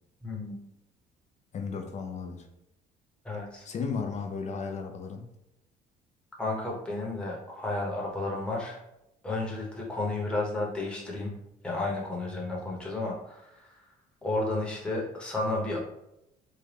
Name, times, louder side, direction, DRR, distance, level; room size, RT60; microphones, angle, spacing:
voice 1, 0.2-0.6 3.2-3.7 6.4-8.8 9.2-11.3 11.6-13.8 14.2-15.8, left 2 dB, 5° left, -3 dB, 1.0 m, -32 dB
voice 2, 1.5-2.5 3.7-5.3, left 5 dB, 40° left, 5 dB, 0.6 m, -34 dB
3.6 x 2.2 x 3.4 m, 0.86 s
cardioid pair, 110°, 17 cm